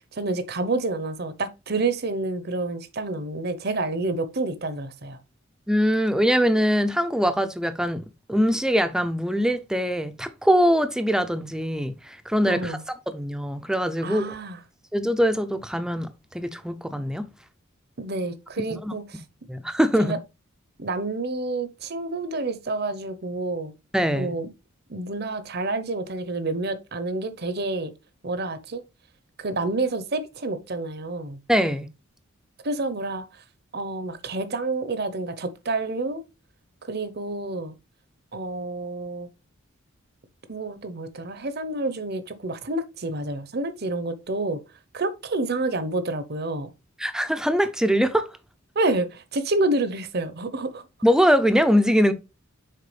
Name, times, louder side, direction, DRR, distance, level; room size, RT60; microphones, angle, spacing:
voice 1, 0.1-5.2 12.4-12.8 14.0-14.6 18.0-19.2 20.0-20.2 20.8-23.7 24.1-24.5 24.9-27.9 28.2-28.8 29.4-31.4 32.6-33.3 33.7-36.2 36.8-37.7 38.3-39.3 40.5-44.6 44.9-46.7 48.7-50.8, right 2 dB, 50° right, 0.8 m, -28 dB
voice 2, 5.7-12.8 13.1-14.3 14.9-16.1 16.3-17.3 18.9-19.0 19.5-20.1 23.9-24.3 31.5-31.9 47.0-48.3 51.0-52.1, equal, 5° right, 0.5 m, -22 dB
6.7 x 4.6 x 3.3 m
head